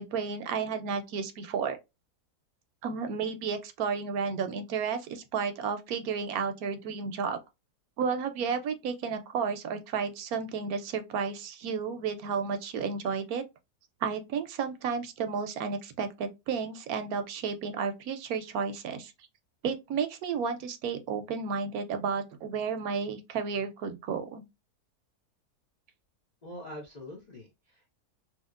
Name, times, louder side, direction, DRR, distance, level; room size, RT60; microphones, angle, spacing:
voice 1, 0.0-1.8 2.8-7.4 8.0-13.4 14.0-19.1 19.6-24.4, right 6 dB, 70° right, 1.0 m, -32 dB
voice 2, 26.4-27.9, left 1 dB, 50° left, 0.5 m, -44 dB
2.9 x 2.8 x 2.3 m
omnidirectional pair, 1.7 m